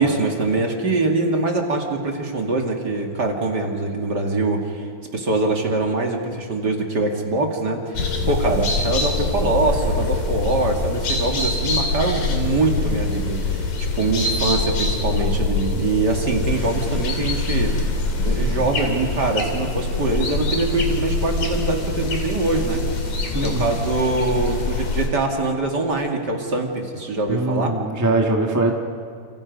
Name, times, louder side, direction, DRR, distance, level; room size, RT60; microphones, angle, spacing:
voice 1, 0.0-23.1 23.4-27.8, right 3 dB, 35° right, 1 dB, 2.5 m, -23 dB
sound 1, 7.9-25.1, left 3 dB, 85° left, 4.4 m, -24 dB
voice 2, 23.3-23.7 27.3-28.7, right 2 dB, 10° right, 1 dB, 1.1 m, -22 dB
29.5 x 28.5 x 5.4 m, 2.3 s
omnidirectional pair, 3.5 m